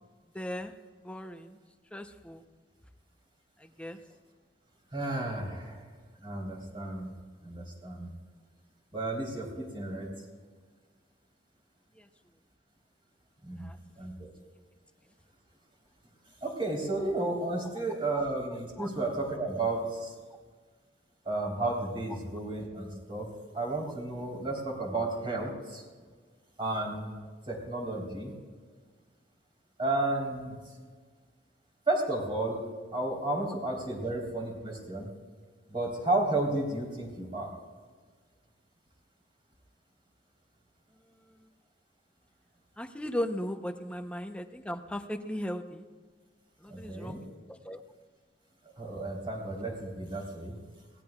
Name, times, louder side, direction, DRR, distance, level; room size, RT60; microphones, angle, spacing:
voice 1, 0.3-0.7 1.0-1.6 1.9-2.4 3.6-4.0 12.0-12.1 13.6-13.8 18.1-18.2 18.8-18.9 41.1-41.5 42.8-45.8 46.6-47.8, equal, 5° left, 7 dB, 0.8 m, -37 dB
voice 2, 4.9-5.9 6.2-7.1 7.4-8.1 8.9-10.1 13.4-13.6 14.0-14.3 16.4-20.1 21.2-25.8 26.6-27.2 27.5-28.3 29.8-30.6 31.9-35.1 35.7-37.5 46.7-47.2 48.8-50.6, right 2 dB, 30° right, -1 dB, 3.7 m, -32 dB
22.5 x 18.0 x 2.4 m, 1.5 s
head